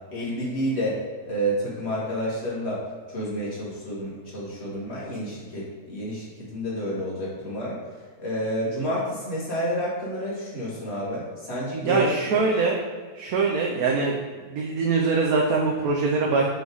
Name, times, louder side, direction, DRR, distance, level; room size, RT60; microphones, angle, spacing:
voice 1, 0.1-1.0 1.3-2.8 3.1-6.3 6.5-7.8 8.2-12.1 12.3-12.5, equal, 45° left, -6 dB, 2.0 m, -29 dB
voice 2, 11.8-12.8 13.1-14.2 14.5-16.5, right 4 dB, 75° right, -2 dB, 1.2 m, -23 dB
6.2 x 3.5 x 4.8 m, 1.6 s
omnidirectional pair, 1.6 m